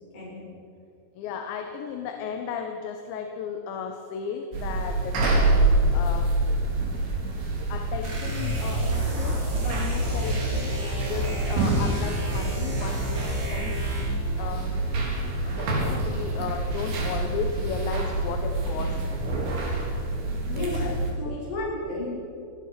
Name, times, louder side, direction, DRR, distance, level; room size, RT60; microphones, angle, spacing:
voice 1, 0.1-0.5 20.5-22.1, left 2 dB, 65° left, -4 dB, 9.4 m, -33 dB
voice 2, 1.2-5.4 5.8-6.4 7.4-14.9 15.4-19.2 20.6-21.0 21.3-21.4, left 6 dB, 85° left, 5 dB, 3.5 m, -35 dB
sound 1, 4.5-21.1, right 2 dB, 80° right, 6.3 m, -27 dB
sound 2, 8.0-14.3, equal, 40° right, 6.4 m, -30 dB
28.5 x 19.5 x 5.9 m, 2.7 s
omnidirectional pair, 5.1 m